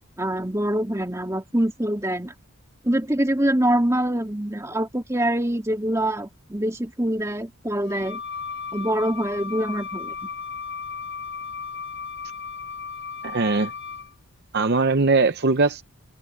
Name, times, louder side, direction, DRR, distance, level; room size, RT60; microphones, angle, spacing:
voice 1, 0.2-2.3 2.8-8.2 8.7-10.3, right 1 dB, 15° right, 2.4 m, -24 dB
Wind instrument woodwind instrument, 7.8-14.1, left 5 dB, 55° left, 4.4 m, -35 dB
voice 2, 13.2-13.7 14.5-15.8, right 3 dB, 50° right, 0.7 m, -20 dB
open air
head